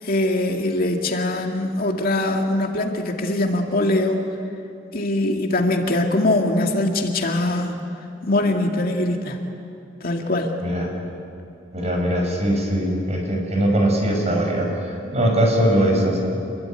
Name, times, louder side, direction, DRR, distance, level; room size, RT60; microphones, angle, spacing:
voice 1, 0.0-4.2 4.9-7.8 8.2-9.4 10.0-10.6, left 1 dB, 50° left, 2 dB, 2.3 m, -22 dB
voice 2, 11.7-16.2, right 1 dB, 35° right, 1 dB, 6.3 m, -21 dB
28.0 x 22.5 x 9.1 m, 2.7 s
head